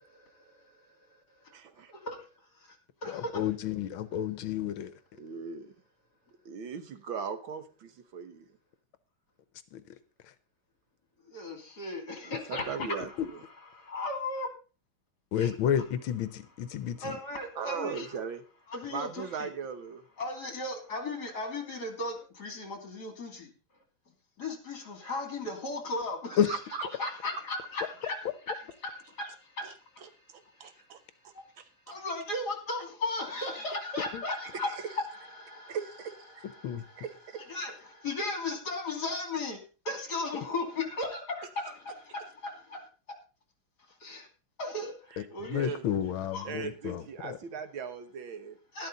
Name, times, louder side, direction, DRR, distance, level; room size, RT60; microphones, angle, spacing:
voice 1, 0.1-0.8 1.9-2.2 2.7-3.3 11.3-13.0 13.7-14.5 15.4-15.5 17.0-18.1 18.7-19.5 20.2-23.5 24.4-26.5 27.0-28.2 28.5-28.6 28.8-30.1 30.6-30.8 31.3-31.4 31.9-35.8 36.4-37.0 37.4-39.6 39.8-42.9 44.0-44.3 44.6-45.6 46.3-46.5 48.7-48.9, left 2 dB, 50° left, 3.3 m, -36 dB
voice 2, 1.5-1.9 5.2-5.7 6.5-8.5 12.2-13.4 17.6-18.4 18.9-20.0 26.5-26.8 29.6-29.7 30.0-32.0 34.6-34.8 35.7-36.4 37.0-37.5 45.1-45.8 46.5-48.6, right 6 dB, 70° right, 1.9 m, -39 dB
voice 3, 3.0-4.9 9.7-9.8 10.2-10.3 12.8-12.9 13.2-13.3 15.3-17.2 26.4-26.5 34.1-34.2 36.6-36.8 45.2-47.4, left 9 dB, 75° left, 1.5 m, -31 dB
12.0 x 12.0 x 4.0 m
omnidirectional pair, 2.3 m